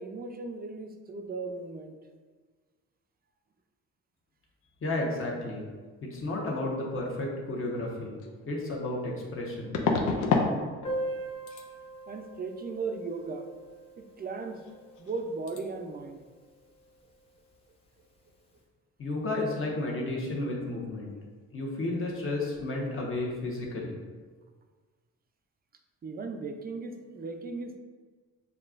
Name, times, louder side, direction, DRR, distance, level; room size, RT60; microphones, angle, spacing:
voice 1, 0.0-2.0 12.1-13.5 14.0-14.6 15.0-16.3 26.0-27.8, right 4 dB, 30° right, 4 dB, 0.5 m, -37 dB
voice 2, 4.8-5.7 6.0-8.2 8.5-9.8 19.0-21.1 21.5-23.9, left 2 dB, 45° left, -2 dB, 1.1 m, -32 dB
sound 1, 8.2-8.3 9.7-10.5 10.8-11.2 11.5-11.7 14.6-14.7 15.0-15.2 15.5-15.6, left 4 dB, 90° left, 0.6 m, -27 dB
Piano, 10.8-16.2 16.5-16.6 16.8-16.9 17.3-17.4 18.1-18.3, right 1 dB, 20° left, 0.7 m, -40 dB
6.6 x 2.4 x 2.5 m, 1.5 s
cardioid pair, 90°, 30 cm